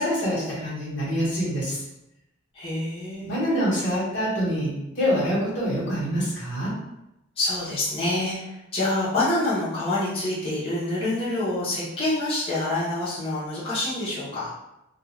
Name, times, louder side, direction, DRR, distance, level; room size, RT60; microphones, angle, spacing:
voice 1, 0.0-1.8 3.2-6.7, equal, 60° left, -7 dB, 1.2 m, -25 dB
voice 2, 2.5-3.3 7.4-8.5 8.7-14.5, left 2 dB, 30° left, -10 dB, 0.8 m, -26 dB
2.4 x 2.4 x 3.0 m, 0.89 s
head